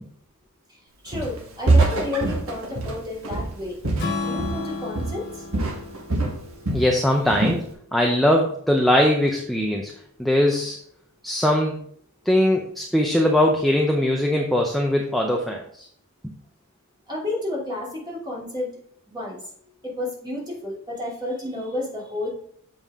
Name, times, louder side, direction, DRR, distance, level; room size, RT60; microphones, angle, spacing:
voice 1, 1.0-3.8 4.2-5.3 17.1-18.7 19.1-19.4 19.8-22.3, left 2 dB, 20° right, -5 dB, 3.0 m, -31 dB
Walk footsteps, 1.1-1.4 1.7-4.7 4.9-5.3 5.5-6.9 7.3-7.6, right 2 dB, 65° right, 1.6 m, -24 dB
Strum, 4.0-8.2, left 3 dB, 50° left, 1.5 m, -34 dB
voice 2, 6.7-7.6 7.9-9.9 10.2-10.8 11.2-11.8 12.3-15.9, left 1 dB, ahead, 0 dB, 0.6 m, -21 dB
7.2 x 5.4 x 3.6 m, 0.62 s
head